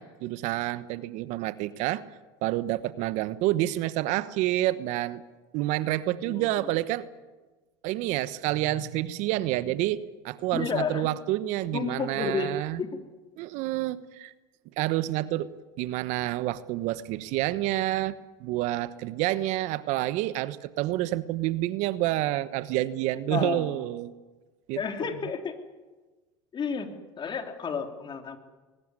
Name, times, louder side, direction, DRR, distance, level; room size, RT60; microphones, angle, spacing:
voice 1, 0.0-2.0 2.4-5.2 5.5-7.1 7.8-12.8 13.4-14.3 14.8-15.5 15.8-24.1 24.7-24.8, right 15 dB, 60° right, 15 dB, 1.1 m, -28 dB
voice 2, 6.2-6.8 10.5-11.1 11.7-13.0 23.3-23.9 24.8-25.6 26.5-28.4, left 5 dB, 35° left, 5 dB, 3.4 m, -32 dB
21.5 x 19.5 x 9.8 m, 1.2 s
hypercardioid pair, 85°, 14 cm